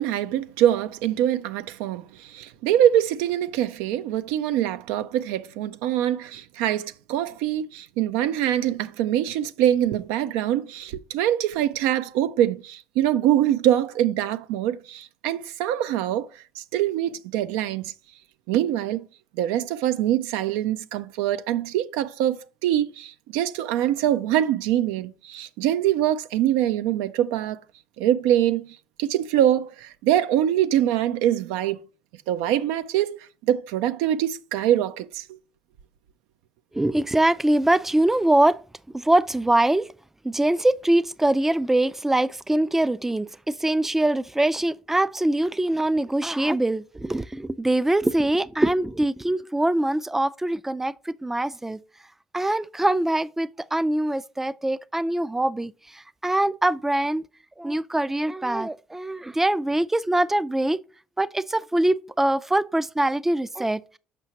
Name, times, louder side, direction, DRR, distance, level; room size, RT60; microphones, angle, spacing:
voice 1, 0.0-16.3 16.6-17.9 18.5-19.1 19.4-27.6 28.0-31.8 32.3-33.2 33.5-35.4, right 11 dB, 80° right, 0.4 m, -24 dB
voice 2, 36.7-38.6 38.9-39.9 40.2-51.8 52.3-57.3 57.6-60.8 61.2-64.0, right 1 dB, 10° right, 0.3 m, -23 dB
6.0 x 5.6 x 2.8 m
hypercardioid pair, 65°, 4 cm